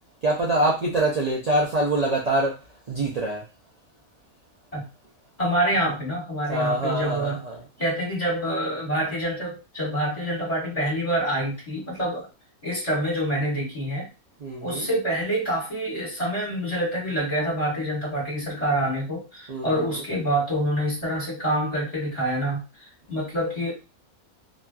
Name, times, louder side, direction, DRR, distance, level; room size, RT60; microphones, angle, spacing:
voice 1, 0.2-2.6 2.9-3.4 6.5-7.6 14.4-14.9 19.5-20.0, right 1 dB, 60° right, 0.4 m, -25 dB
voice 2, 5.4-7.4 7.8-12.3 12.6-14.1 14.6-23.7, right 1 dB, 25° left, 1.7 m, -26 dB
3.1 x 2.6 x 2.2 m
omnidirectional pair, 1.5 m